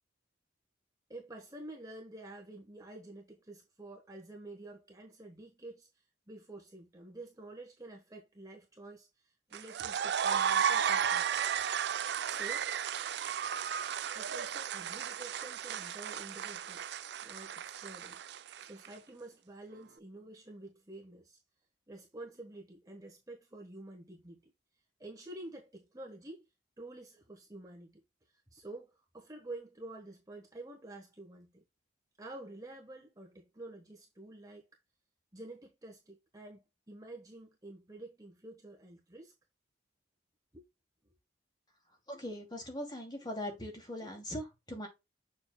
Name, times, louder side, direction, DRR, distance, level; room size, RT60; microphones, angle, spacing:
voice 1, 1.1-5.9 6.3-11.4 12.3-12.7 14.1-16.9 17.2-18.2 18.6-21.4 21.9-24.5 25.0-26.4 26.8-28.0 28.5-31.6 32.2-34.7 35.3-39.3 40.5-40.7 41.1-41.2, right 2 dB, 20° right, 1.2 m, -49 dB
sound 1, 9.5-18.9, right 8 dB, 60° right, 0.4 m, -34 dB
voice 2, 42.1-44.9, left 1 dB, 20° left, 2.5 m, -40 dB
7.1 x 6.0 x 2.2 m
head